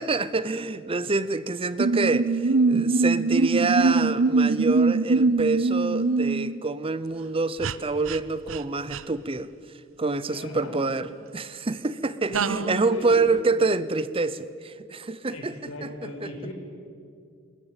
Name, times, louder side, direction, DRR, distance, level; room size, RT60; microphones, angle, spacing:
voice 1, 0.0-9.5 10.0-11.1 11.3-15.5 15.8-15.9, right 3 dB, 25° right, 16 dB, 0.6 m, -26 dB
sound 1, 1.8-6.6 7.6-7.8 8.1-8.2 8.5-8.6 8.9-9.0 12.3-12.9, right 3 dB, 65° right, 0.7 m, -23 dB
voice 2, 10.3-10.8 12.3-13.4 15.3-16.5, left 1 dB, 90° left, 4 dB, 4.7 m, -37 dB
20.5 x 20.5 x 8.9 m, 2.3 s
head